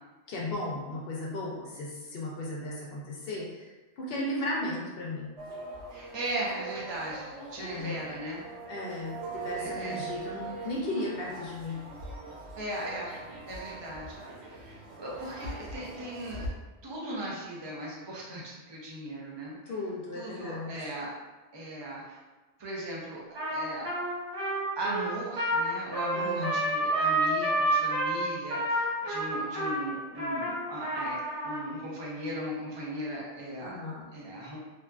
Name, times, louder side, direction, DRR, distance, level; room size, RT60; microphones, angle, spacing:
voice 1, 0.3-3.7 4.0-5.3 7.6-8.0 8.7-11.8 19.7-20.9 26.1-26.6 33.6-34.1, left 2 dB, 65° left, -3 dB, 0.7 m, -35 dB
sound 1, 5.4-16.5, right 3 dB, 70° right, 0.8 m, -41 dB
voice 2, 5.9-8.4 9.6-10.0 12.6-13.2 13.5-14.1 14.4-16.4 16.8-19.6 20.1-21.1 21.5-22.2 22.6-23.9 24.8-33.8 34.1-34.6, right 1 dB, 40° right, -5 dB, 0.4 m, -38 dB
Trumpet, 23.3-31.6, right 1 dB, 55° right, 1.2 m, -29 dB
2.6 x 2.4 x 2.2 m, 1.2 s
omnidirectional pair, 1.2 m